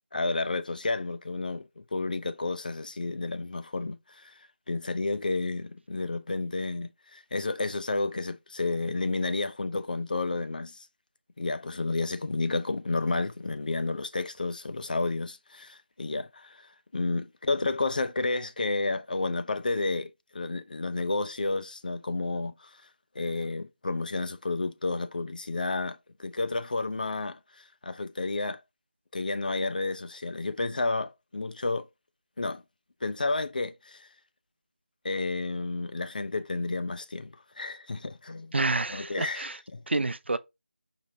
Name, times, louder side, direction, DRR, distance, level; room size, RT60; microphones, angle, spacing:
voice 1, 0.1-4.3 4.7-10.9 11.4-22.8 23.2-28.6 29.1-31.9 32.4-32.6 33.0-34.1 35.0-38.5 38.9-39.8, left 3 dB, 45° left, 0.4 m, -31 dB
voice 2, 38.5-39.6 39.9-40.4, right 3 dB, 75° right, 0.5 m, -28 dB
5.1 x 3.3 x 2.6 m
figure-of-eight pair, 170°, 6 cm